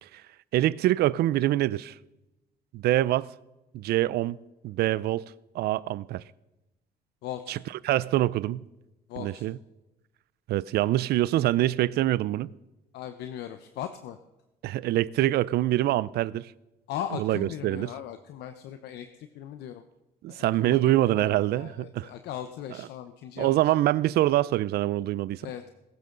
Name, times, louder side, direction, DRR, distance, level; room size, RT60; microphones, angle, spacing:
voice 1, 0.5-2.0 2.7-3.3 3.7-4.4 4.6-5.2 5.5-6.2 7.5-7.6 7.8-8.6 9.2-9.6 10.5-12.5 14.6-16.5 17.2-17.9 20.2-22.1 23.4-25.4, right 15 dB, 70° right, 0.5 m, -25 dB
voice 2, 7.2-7.6 9.1-9.4 12.9-14.2 16.9-19.8 20.3-23.6 25.4-25.7, left 10 dB, 75° left, 0.9 m, -38 dB
21.0 x 12.0 x 3.9 m
cardioid pair, 110°, 17 cm